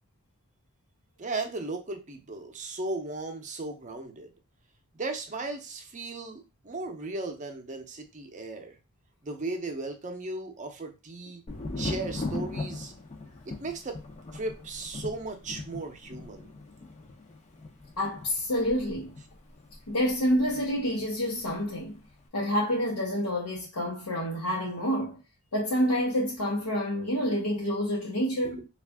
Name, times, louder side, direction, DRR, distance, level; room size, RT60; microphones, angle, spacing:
voice 1, 1.2-4.3 4.9-8.8 9.2-11.4 11.8-12.9 13.5-14.0 14.3-16.5 28.4-28.6, right 3 dB, 35° right, 0.6 m, -36 dB
Thunder, 11.5-21.1 21.4-22.1, left 2 dB, 30° left, 0.6 m, -39 dB
voice 2, 18.0-19.2 19.9-22.0 22.3-25.2 25.5-28.7, equal, 80° left, 0.8 m, -28 dB
3.5 x 2.4 x 3.4 m
head